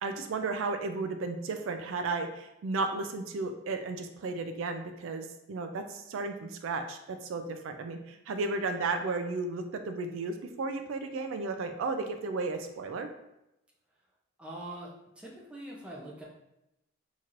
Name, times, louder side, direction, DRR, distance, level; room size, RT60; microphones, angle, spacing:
voice 1, 0.0-13.1, right 3 dB, 70° right, 7 dB, 0.3 m, -34 dB
voice 2, 14.4-16.2, right 1 dB, 5° right, -4 dB, 0.6 m, -43 dB
4.4 x 2.9 x 2.5 m, 0.88 s
head